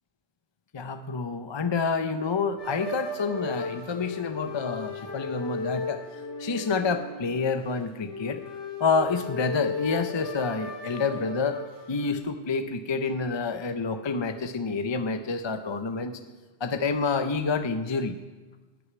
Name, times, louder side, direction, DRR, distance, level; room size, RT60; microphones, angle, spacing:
voice 1, 0.7-6.0 6.4-8.4 8.8-11.6 11.9-16.2 16.6-18.2, left 4 dB, 40° left, 8 dB, 0.4 m, -28 dB
sound 1, 2.6-12.1, left 3 dB, 65° left, 2.8 m, -36 dB
13.0 x 6.5 x 9.4 m, 1.2 s
omnidirectional pair, 1.3 m